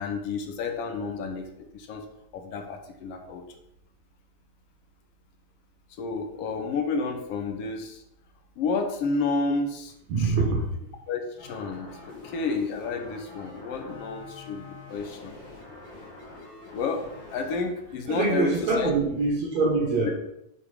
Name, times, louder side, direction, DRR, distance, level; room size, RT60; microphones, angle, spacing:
voice 1, 0.0-2.0 2.3-3.4 6.0-8.0 8.6-10.6 11.1-14.6 14.9-15.4 16.7-18.9 20.0-20.1, left 4 dB, 65° left, 5 dB, 1.6 m, -31 dB
voice 2, 10.1-10.4 18.1-20.1, right 3 dB, 65° right, -2 dB, 2.5 m, -24 dB
sound 1, 11.4-17.6, left 3 dB, 40° left, 2.4 m, -45 dB
7.5 x 4.9 x 4.9 m, 0.80 s
omnidirectional pair, 3.5 m